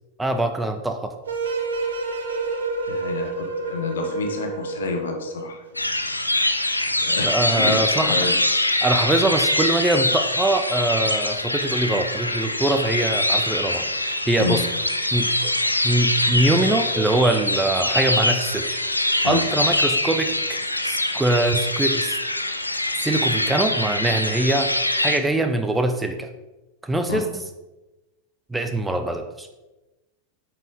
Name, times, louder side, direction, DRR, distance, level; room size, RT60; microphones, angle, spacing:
voice 1, 0.2-1.2 7.2-8.1 8.8-14.6 15.1-15.6 15.8-18.8 19.2-22.2 23.0-24.7 25.0-26.3 26.8-27.4 28.5-29.5, right 2 dB, 10° right, 7 dB, 0.6 m, -23 dB
sound 1, 1.3-5.6, right 3 dB, 65° right, 1.1 m, -28 dB
voice 2, 2.9-5.6 7.0-8.4 14.4-14.6 19.2-19.4 27.1-27.2, left 4 dB, 65° left, 4 dB, 1.2 m, -29 dB
sound 2, 5.7-25.2, left 1 dB, 85° left, 0.5 m, -23 dB
9.1 x 5.5 x 3.8 m, 1.0 s
figure-of-eight pair, 90°, 0 cm